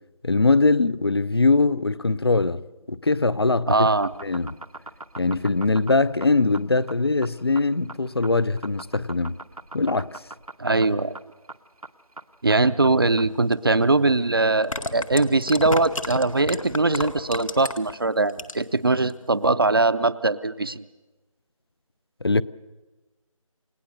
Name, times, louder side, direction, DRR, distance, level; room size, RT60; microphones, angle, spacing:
voice 1, 0.2-2.6 2.9-3.9 4.2-4.6 5.2-9.3 9.7-10.2 22.2-22.4, left 3 dB, 45° left, 0.7 m, -21 dB
voice 2, 3.7-4.1 10.6-11.1 12.4-20.8, right 3 dB, 40° right, 0.6 m, -21 dB
sound 1, 3.7-13.4, right 2 dB, 90° right, 1.2 m, -41 dB
sound 2, 13.5-13.6 14.5-17.9 18.3-18.8 19.1-19.2, left 2 dB, 70° left, 2.0 m, -31 dB
29.0 x 17.5 x 6.7 m
figure-of-eight pair, 160°, 18 cm